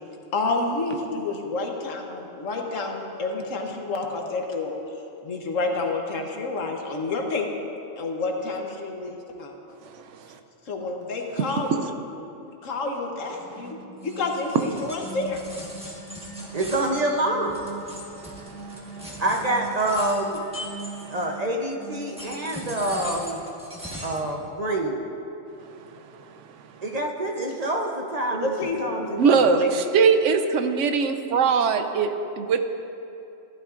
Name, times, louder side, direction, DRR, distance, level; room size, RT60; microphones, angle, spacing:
voice 1, 0.3-4.8 5.2-7.7 8.0-9.8 10.7-11.7 12.2-13.8 14.0-15.4 28.4-29.1 29.5-29.7, left 3 dB, 85° left, 2 dB, 1.4 m, -29 dB
voice 2, 9.8-10.4 11.5-11.6 16.4-16.6 18.2-19.2 21.0-21.2 23.9-24.1 25.6-26.8 29.2-32.6, right 5 dB, 75° right, 7 dB, 0.9 m, -23 dB
sound 1, 13.2-23.7, right 3 dB, 15° left, 1.4 m, -42 dB
sound 2, 14.0-21.5 21.9-24.3, equal, 5° right, 1.3 m, -40 dB
voice 3, 16.5-17.6 19.2-20.4 21.1-23.4 24.0-25.0 26.8-29.4, right 1 dB, 40° right, 1 dB, 0.8 m, -26 dB
14.0 x 12.0 x 2.5 m, 2.8 s
omnidirectional pair, 1.3 m